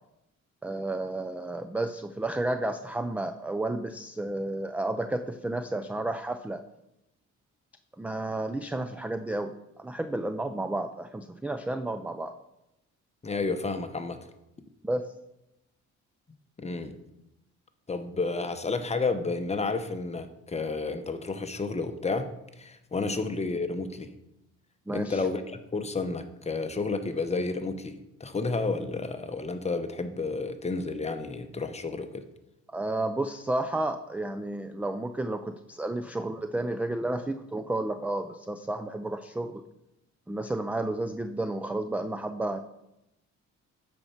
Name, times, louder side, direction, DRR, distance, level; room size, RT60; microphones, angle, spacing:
voice 1, 0.6-6.6 8.0-9.5 9.8-12.3 14.8-15.1 23.0-23.2 24.9-25.3 32.7-39.6 40.3-42.6, right 2 dB, 5° right, 9 dB, 0.3 m, -31 dB
voice 2, 13.2-14.2 16.6-17.0 17.9-22.3 22.6-24.1 24.9-32.3, left 3 dB, 20° left, 8 dB, 0.8 m, -31 dB
8.8 x 4.4 x 5.8 m, 0.89 s
cardioid pair, 90°, 30 cm